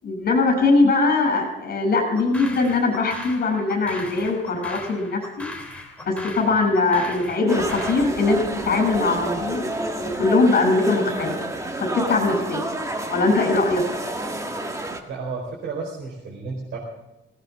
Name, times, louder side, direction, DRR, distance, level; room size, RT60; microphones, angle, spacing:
voice 1, 0.0-5.5 6.0-9.7 10.0-11.4 11.8-12.6 13.1-13.8, left 3 dB, 50° left, 4 dB, 7.2 m, -21 dB
sound 1, 2.1-8.1, left 2 dB, 5° left, 3.4 m, -38 dB
sound 2, 7.5-15.0, right 1 dB, 15° right, 1.8 m, -30 dB
voice 2, 15.1-16.8, right 4 dB, 80° right, -2 dB, 4.4 m, -32 dB
19.5 x 18.0 x 3.6 m, 0.93 s
cardioid pair, 155°, 20 cm